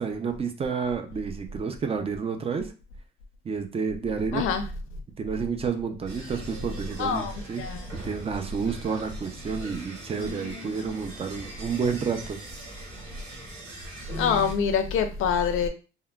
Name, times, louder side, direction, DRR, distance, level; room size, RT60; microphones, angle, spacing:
voice 1, 0.0-2.7 3.4-4.5 5.2-7.6 7.9-12.4, right 5 dB, 30° right, 5 dB, 0.4 m, -30 dB
sound 1, 6.1-14.5, right 1 dB, 80° right, 1.5 m, -41 dB
voice 2, 7.0-7.3 7.6-7.8 14.2-15.7, left 6 dB, 75° left, 7 dB, 0.5 m, -25 dB
3.6 x 2.1 x 2.3 m, 0.33 s
cardioid pair, 125°, 21 cm